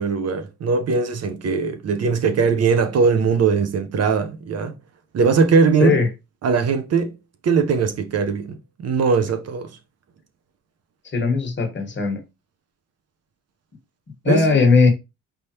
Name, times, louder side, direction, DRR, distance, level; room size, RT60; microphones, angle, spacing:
voice 1, 0.0-4.8 5.1-6.0 6.4-7.1 7.4-9.7 14.3-14.6, right 5 dB, 55° right, 1.0 m, -20 dB
voice 2, 11.0-12.2 14.2-14.9, left 4 dB, 40° left, 1.5 m, -18 dB
5.1 x 3.5 x 2.9 m
cardioid pair, 90°, 30 cm